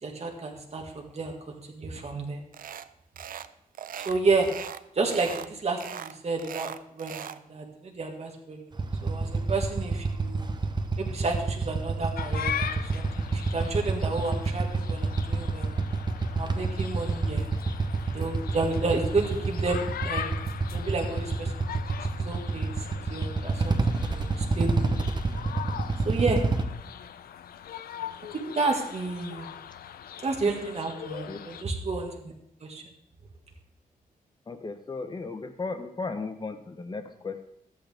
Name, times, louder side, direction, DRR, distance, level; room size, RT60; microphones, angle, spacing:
voice 1, 0.0-2.4 4.0-4.5 4.9-8.7 9.0-10.5 11.0-15.7 16.3-17.5 18.1-20.2 20.7-21.7 22.0-24.9 26.0-26.4 28.4-29.5 30.2-32.3 32.6-32.8, right 3 dB, 45° right, 1 dB, 1.7 m, -31 dB
sound 1, 2.5-2.9 3.2-3.5 3.7-4.8 5.1-5.5 5.8-7.4, right 9 dB, 70° right, 0.5 m, -39 dB
Motorcycle / Idling, 8.7-26.6, right 3 dB, 30° right, 0.9 m, -28 dB
sound 2, 12.2-31.6, left 9 dB, 85° left, 0.5 m, -40 dB
voice 2, 34.5-37.4, left 3 dB, 30° left, 7 dB, 1.0 m, -35 dB
13.0 x 8.5 x 3.5 m, 0.78 s
cardioid pair, 90°, 15 cm